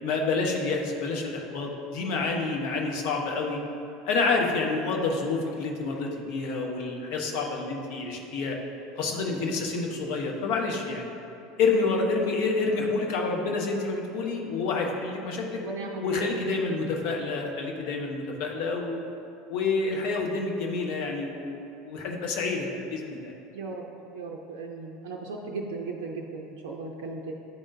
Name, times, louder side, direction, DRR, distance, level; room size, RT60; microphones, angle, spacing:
voice 1, 0.0-3.6 4.0-8.6 9.0-11.1 11.6-15.6 16.0-19.0 19.5-23.3, left 3 dB, 55° left, 1 dB, 0.9 m, -28 dB
voice 2, 15.6-16.3 23.5-23.9 24.1-27.3, right 3 dB, 65° right, 1 dB, 0.5 m, -36 dB
10.5 x 3.6 x 2.6 m, 2.7 s
figure-of-eight pair, 75°, 0 cm